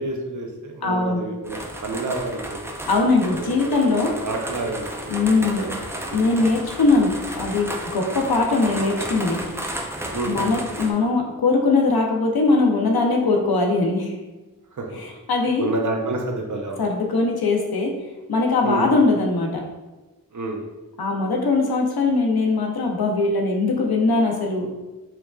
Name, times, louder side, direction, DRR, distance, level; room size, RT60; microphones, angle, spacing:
voice 1, 0.0-2.7 3.3-6.2 10.1-10.4 14.8-14.9 15.6-16.8 18.6-18.9 20.3-20.6, right 2 dB, 55° right, 1 dB, 0.6 m, -29 dB
voice 2, 0.8-1.2 2.8-4.1 5.1-5.7 6.1-7.7 7.9-9.4 10.2-14.1 14.9-15.7 16.8-17.9 18.3-19.6 21.0-24.7, left 3 dB, 85° left, 1 dB, 0.6 m, -21 dB
sound 1, 1.4-10.9, right 1 dB, 10° right, 0.3 m, -33 dB
4.5 x 2.4 x 2.3 m, 1.1 s
wide cardioid pair, 60°, 36 cm